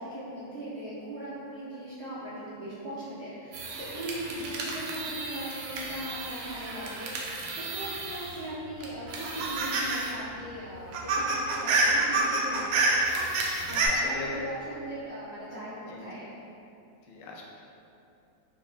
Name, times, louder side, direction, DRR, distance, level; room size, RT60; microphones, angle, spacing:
voice 1, 0.0-13.1 13.7-16.3, right 1 dB, 65° right, -10 dB, 0.6 m, -39 dB
sound 1, 3.5-8.5 8.8-10.1 10.4-10.5 10.8-13.9, right 3 dB, 85° right, 1.2 m, -30 dB
voice 2, 13.8-14.5 15.9-16.0 17.1-17.4, left 3 dB, 85° left, -2 dB, 1.2 m, -38 dB
4.6 x 2.6 x 2.4 m, 2.7 s
omnidirectional pair, 1.9 m